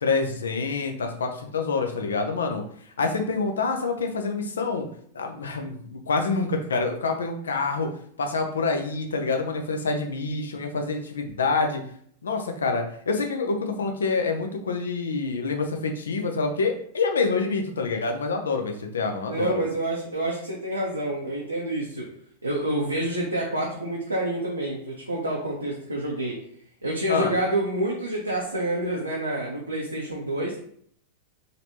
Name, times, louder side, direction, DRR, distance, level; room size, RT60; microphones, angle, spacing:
voice 1, 0.0-2.6 3.0-4.9 5.1-7.9 8.2-11.8 12.2-19.6 27.1-27.3, left 4 dB, 70° left, 4 dB, 0.7 m, -27 dB
voice 2, 19.3-22.1 22.4-26.4 26.8-30.6, right 1 dB, 85° right, -4 dB, 0.8 m, -28 dB
4.0 x 3.3 x 2.8 m, 0.63 s
figure-of-eight pair, 90°, 0 cm